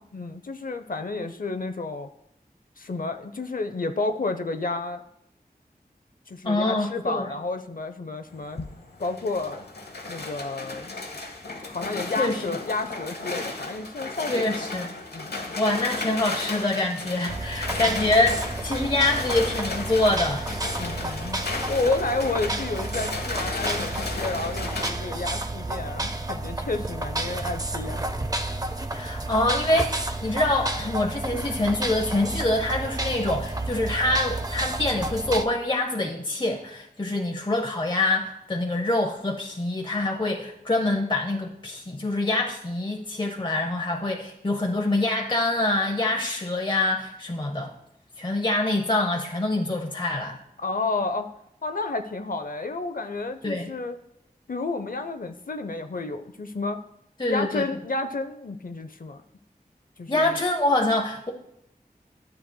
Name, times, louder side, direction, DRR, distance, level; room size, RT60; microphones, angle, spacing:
voice 1, 0.1-2.1 2.8-5.0 6.3-8.6 9.0-9.6 10.1-10.9 11.6-14.7 15.1-15.6 17.7-18.0 20.8-21.4 21.7-28.1 50.6-51.3 51.6-54.0 54.5-56.8 57.3-59.2 60.0-60.4, left 3 dB, 60° left, 8 dB, 0.5 m, -31 dB
voice 2, 6.4-7.3 12.2-12.4 14.3-14.9 15.6-20.5 28.9-47.7 48.2-50.4 53.4-53.7 57.2-57.6 60.1-61.3, left 2 dB, 30° left, 1 dB, 0.7 m, -25 dB
sound 1, 8.3-24.9, left 3 dB, 90° left, 0.9 m, -34 dB
sound 2, 17.3-35.5, right 2 dB, 20° right, 0.5 m, -31 dB
12.0 x 7.6 x 2.2 m, 0.77 s
wide cardioid pair, 55°, 16 cm